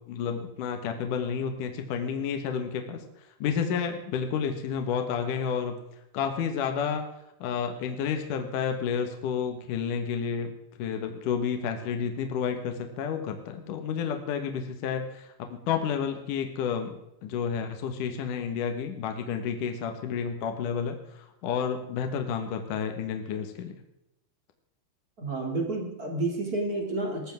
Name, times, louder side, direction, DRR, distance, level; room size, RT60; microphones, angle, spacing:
voice 1, 0.1-3.0 3.4-5.8 6.1-7.0 7.4-10.5 10.8-23.7, left 7 dB, 60° left, 5 dB, 2.5 m, -30 dB
voice 2, 25.2-27.3, right 2 dB, 25° right, 1 dB, 2.2 m, -30 dB
20.5 x 14.5 x 3.6 m, 0.84 s
omnidirectional pair, 4.9 m